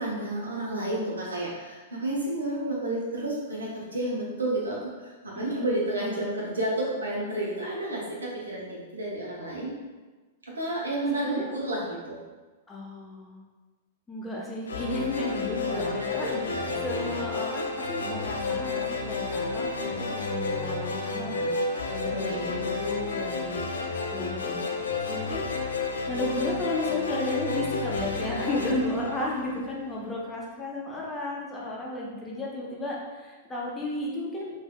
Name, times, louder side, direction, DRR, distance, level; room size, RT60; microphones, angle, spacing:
voice 1, 0.0-9.7 10.5-12.2 15.7-17.2 22.1-22.6, right 1 dB, 80° right, -4 dB, 0.8 m, -31 dB
voice 2, 5.3-5.7 11.1-11.5 12.7-13.4 14.1-16.3 16.8-21.6 21.9-23.9 24.1-25.4 26.1-34.5, left 1 dB, 15° left, -4 dB, 0.7 m, -33 dB
sound 1, 14.7-29.9, left 3 dB, 75° left, 0.4 m, -31 dB
3.4 x 2.6 x 2.2 m, 1.3 s
figure-of-eight pair, 100°, 0 cm